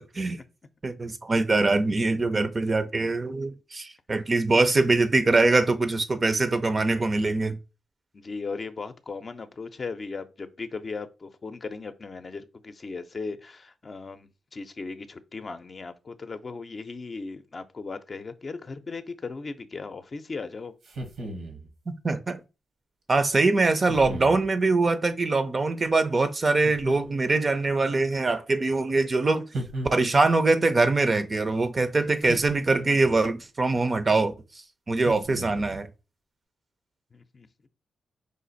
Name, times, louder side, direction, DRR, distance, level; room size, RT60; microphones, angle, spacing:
voice 1, 0.8-7.6 21.9-22.4 23.1-29.4 29.9-34.3 34.9-35.9, right 3 dB, 35° right, 0.6 m, -23 dB
voice 2, 8.1-20.7 37.1-37.5, left 4 dB, 45° left, 0.6 m, -37 dB
sound 1, 20.8-21.7 23.9-24.5 26.6-27.4 29.5-30.4 32.2-33.2 35.0-35.8, right 1 dB, 80° right, 1.2 m, -36 dB
5.0 x 2.4 x 4.0 m
cardioid pair, 75°, 0 cm